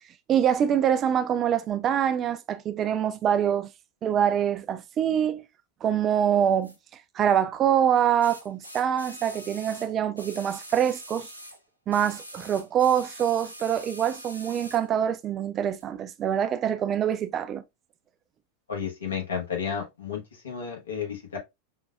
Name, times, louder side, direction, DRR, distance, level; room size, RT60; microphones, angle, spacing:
voice 1, 0.3-3.7 4.0-5.4 5.8-6.7 7.1-11.3 11.9-17.6, right 9 dB, 30° right, 0.3 m, -25 dB
sound 1, 6.6-6.8 8.2-11.6 11.9-14.9 15.8-15.9, equal, 90° left, 0.5 m, -44 dB
voice 2, 18.7-21.4, left 7 dB, 70° left, 1.1 m, -32 dB
5.2 x 2.2 x 2.3 m
figure-of-eight pair, 90°, 0 cm